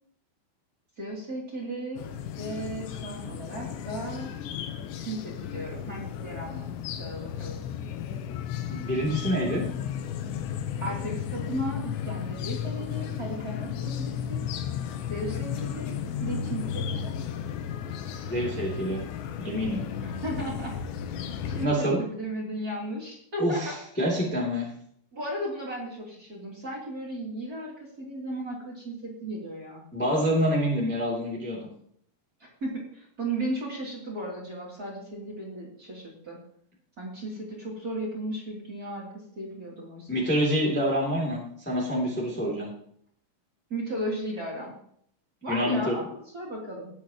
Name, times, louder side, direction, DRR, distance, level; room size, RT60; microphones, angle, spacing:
voice 1, 1.0-2.0 2.4-4.3 5.0-6.7 7.0-7.6 10.8-14.5 15.1-15.9 16.2-17.1 20.0-20.8 21.5-23.7 25.1-29.8 32.6-36.4 37.0-40.1 43.7-44.7 45.4-46.9, right 1 dB, 25° right, -4 dB, 2.8 m, -35 dB
sound 1, 2.0-21.7, left 8 dB, 80° left, 3.0 m, -34 dB
voice 2, 8.7-9.6 18.3-19.0 19.4-19.8 21.6-22.0 23.4-24.7 29.9-31.7 40.1-42.7 45.5-45.9, equal, 5° left, -3 dB, 1.5 m, -27 dB
19.0 x 8.3 x 3.0 m, 0.66 s
omnidirectional pair, 5.3 m